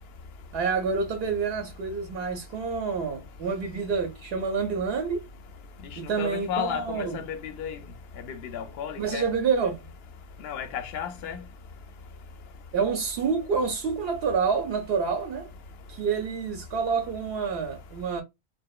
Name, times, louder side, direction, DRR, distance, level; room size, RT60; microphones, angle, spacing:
voice 1, 0.5-5.2 6.0-7.2 9.0-9.9 12.7-15.5 15.9-18.2, right 5 dB, 70° right, 0.8 m, -28 dB
voice 2, 6.0-7.8 8.2-9.3 10.4-11.4, left 8 dB, 70° left, 0.8 m, -33 dB
2.8 x 2.1 x 2.2 m
omnidirectional pair, 1.1 m